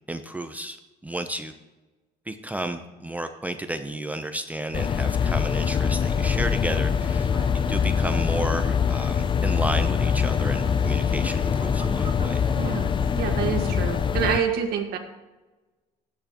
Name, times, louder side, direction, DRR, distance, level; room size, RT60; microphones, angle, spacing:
voice 1, 0.1-0.8 1.0-1.5 2.3-7.3 7.7-12.5, right 1 dB, 10° right, 7 dB, 0.6 m, -32 dB
sound 1, 4.7-14.4, left 7 dB, 30° left, 0.4 m, -24 dB
sound 2, 6.0-14.4, right 3 dB, 30° right, 1.7 m, -41 dB
voice 2, 12.5-12.9 13.2-15.0, right 7 dB, 70° right, 4 dB, 1.7 m, -27 dB
12.5 x 10.5 x 3.0 m, 1.1 s
cardioid pair, 110°, 17 cm